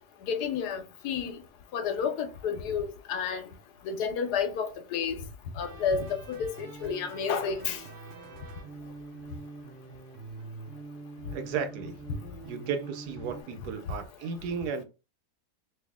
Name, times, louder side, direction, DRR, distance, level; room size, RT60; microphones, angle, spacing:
voice 1, 0.2-1.4 1.7-3.5 3.8-5.2 5.6-7.8, left 6 dB, 80° left, 1.3 m, -31 dB
sound 1, 5.6-13.4, right 3 dB, 60° right, 0.9 m, -45 dB
voice 2, 11.3-12.0 12.4-14.8, right 6 dB, 80° right, 1.2 m, -34 dB
3.3 x 2.7 x 3.5 m
omnidirectional pair, 1.7 m